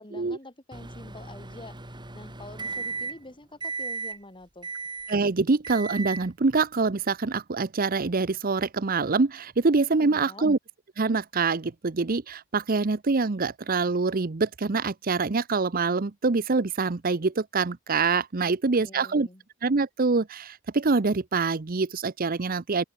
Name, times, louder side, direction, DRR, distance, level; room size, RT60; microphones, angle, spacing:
voice 1, 0.0-4.7 10.0-10.5 18.4-19.4, left 1 dB, 25° left, 5.5 m, -46 dB
Microwave oven, 0.7-3.3 3.6-4.2 4.6-5.2 5.6-6.3, right 4 dB, 20° right, 4.3 m, -36 dB
voice 2, 5.1-10.6 11.0-19.3 19.6-22.8, right 4 dB, 45° right, 0.7 m, -25 dB
open air
head